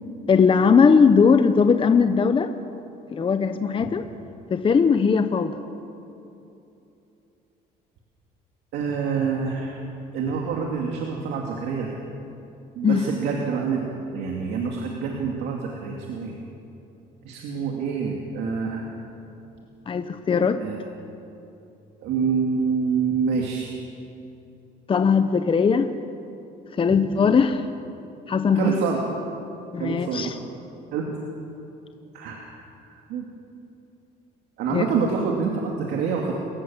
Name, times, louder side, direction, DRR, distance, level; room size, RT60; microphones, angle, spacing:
voice 1, 0.3-2.5 3.1-4.0 4.5-5.6 12.8-13.0 19.9-20.6 24.9-25.9 26.8-27.6 28.3-28.7 29.7-30.3 34.7-34.8, left 5 dB, 30° left, 9 dB, 1.0 m, -19 dB
voice 2, 8.7-9.8 10.1-12.0 12.8-13.8 14.1-16.4 17.2-18.9 20.6-20.8 22.0-23.7 26.9-27.0 28.5-29.0 29.8-30.3 30.9-31.2 32.1-32.4 32.8-33.3 34.6-36.3, right 5 dB, 85° right, 0 dB, 2.6 m, -26 dB
28.0 x 16.0 x 7.4 m, 2.9 s
cardioid pair, 110°, 17 cm